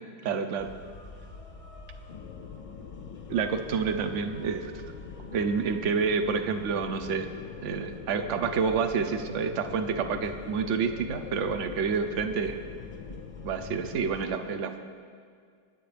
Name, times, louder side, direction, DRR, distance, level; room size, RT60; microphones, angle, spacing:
voice 1, 0.2-0.7 3.3-4.8 5.3-7.3 7.6-12.6 13.4-14.8, right 5 dB, 65° right, 8 dB, 0.7 m, -28 dB
sound 1, 0.6-14.3, left 3 dB, 40° left, 0.5 m, -47 dB
sound 2, 2.1-14.1, left 8 dB, 75° left, 1.2 m, -44 dB
25.0 x 10.5 x 3.4 m, 2.1 s
omnidirectional pair, 2.2 m